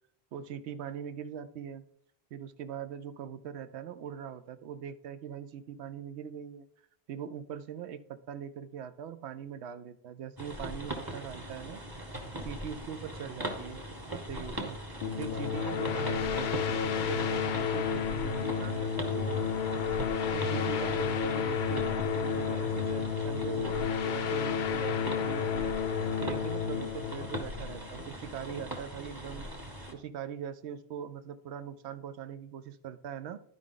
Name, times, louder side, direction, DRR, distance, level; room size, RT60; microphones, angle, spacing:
voice 1, 0.3-1.9 2.3-6.7 7.1-11.8 12.3-13.8 14.1-14.8 15.2-19.5 20.3-25.8 26.2-29.5 29.9-33.4, right 8 dB, 80° right, 12 dB, 0.9 m, -41 dB
sound 1, 10.4-29.9, right 1 dB, 20° right, 1.0 m, -40 dB
sound 2, 15.0-28.3, left 7 dB, 60° left, 0.6 m, -31 dB
11.0 x 4.9 x 3.7 m, 0.69 s
omnidirectional pair, 1.1 m